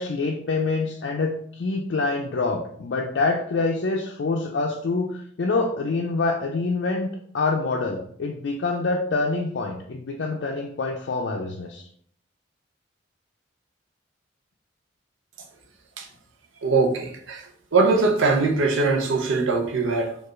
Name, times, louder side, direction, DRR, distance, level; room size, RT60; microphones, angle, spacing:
voice 1, 0.0-7.1 7.3-11.8, left 3 dB, 65° left, 0.4 m, -26 dB
voice 2, 16.6-17.4 17.7-20.1, right 3 dB, 75° right, 0.6 m, -21 dB
4.4 x 2.4 x 3.1 m
head